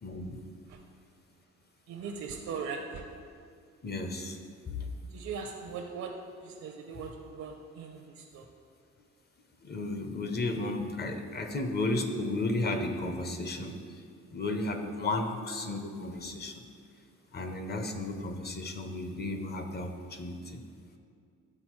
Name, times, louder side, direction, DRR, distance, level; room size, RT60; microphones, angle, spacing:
voice 1, 0.0-0.4 3.8-4.4 4.7-4.9 9.6-14.0 14.3-16.6 17.3-20.6, left 2 dB, 35° left, 6 dB, 0.7 m, -34 dB
voice 2, 1.9-3.0 5.1-6.1 6.4-8.4, right 5 dB, 70° right, 2 dB, 0.6 m, -39 dB
11.0 x 4.0 x 3.1 m, 2.3 s
cardioid pair, 90°, 30 cm